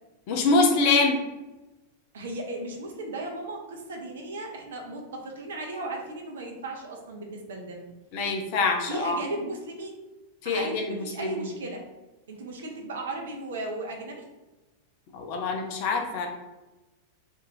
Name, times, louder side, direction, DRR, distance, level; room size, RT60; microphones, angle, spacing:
voice 1, 0.3-1.2 8.1-9.2 10.4-11.4 15.1-16.3, left 3 dB, 45° left, 2 dB, 0.5 m, -25 dB
voice 2, 2.1-7.9 8.9-9.9 10.4-11.8 12.3-14.2, right 2 dB, 65° right, 1 dB, 0.6 m, -36 dB
2.5 x 2.3 x 3.2 m, 1.1 s
figure-of-eight pair, 90°, 0 cm